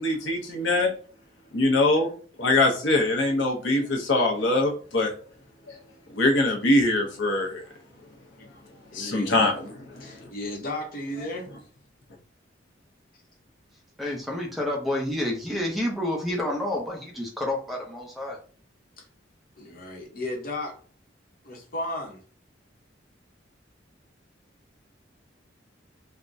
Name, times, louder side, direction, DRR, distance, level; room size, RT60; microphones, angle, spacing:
voice 1, 0.0-0.9 1.5-2.1 2.4-5.1 6.1-7.6 8.9-10.1, left 2 dB, 80° left, 0.7 m, -23 dB
voice 2, 8.9-9.5 10.0-11.5 19.0-19.1 19.6-20.7 21.4-22.2, left 1 dB, 50° left, 0.8 m, -34 dB
voice 3, 14.0-18.4, left 1 dB, ahead, 0.6 m, -29 dB
3.5 x 2.1 x 2.6 m
head